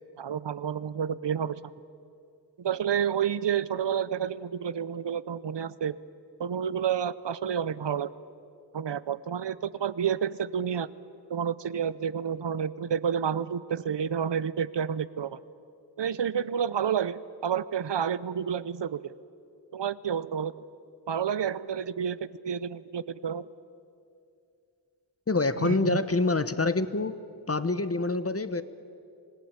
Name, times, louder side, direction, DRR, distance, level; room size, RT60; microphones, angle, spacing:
voice 1, 0.2-1.6 2.6-6.0 6.4-8.1 8.7-10.9 11.3-15.4 16.0-19.1 19.7-20.5 21.1-23.5 25.6-26.0, right 8 dB, 85° right, 17 dB, 0.7 m, -30 dB
voice 2, 25.3-27.1 27.5-28.6, left 3 dB, 35° left, 13 dB, 1.0 m, -26 dB
26.5 x 17.0 x 8.8 m, 2.5 s
wide cardioid pair, 40°, 42 cm